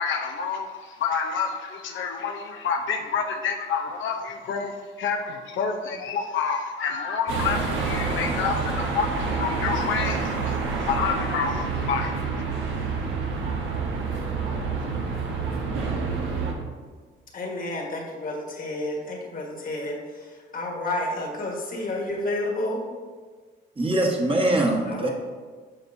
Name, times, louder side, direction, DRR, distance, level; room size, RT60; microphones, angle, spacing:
voice 1, 0.0-12.4, left 5 dB, 75° left, 3 dB, 0.7 m, -28 dB
sound 1, 7.3-16.5, right 4 dB, 80° right, 1.2 m, -28 dB
voice 2, 17.3-22.8 24.9-25.1, left 2 dB, 45° left, 0 dB, 1.6 m, -30 dB
voice 3, 23.8-25.1, right 1 dB, 25° right, -1 dB, 1.4 m, -22 dB
8.9 x 5.9 x 2.7 m, 1.5 s
cardioid pair, 90°, 20 cm